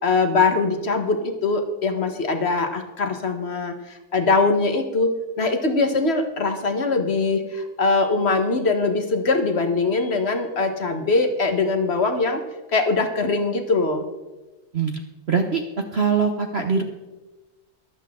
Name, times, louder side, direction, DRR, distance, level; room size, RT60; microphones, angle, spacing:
voice 1, 0.0-12.4 12.7-14.0, left 3 dB, 40° left, 6 dB, 1.4 m, -22 dB
voice 2, 15.3-15.6 15.9-16.8, right 5 dB, 45° right, 3 dB, 1.0 m, -22 dB
23.5 x 8.1 x 3.7 m, 1.1 s
omnidirectional pair, 2.0 m